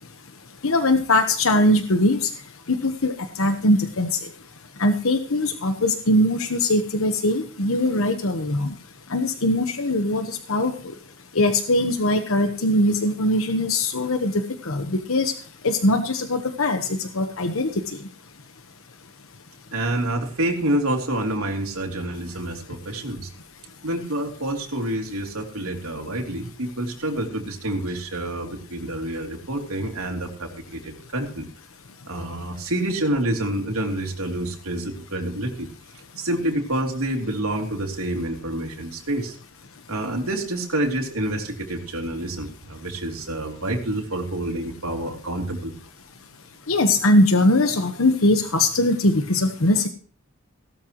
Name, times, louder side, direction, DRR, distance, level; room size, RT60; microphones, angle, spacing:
voice 1, 0.6-2.3 2.7-4.2 4.8-8.7 9.1-10.7 11.3-15.3 15.6-17.7 46.7-49.9, left 1 dB, 75° left, 7 dB, 1.2 m, -21 dB
voice 2, 19.7-23.3 23.8-31.5 32.0-35.7 36.2-39.4 39.9-45.7, right 1 dB, 80° right, 1 dB, 3.3 m, -28 dB
17.5 x 13.0 x 3.0 m, 0.42 s
head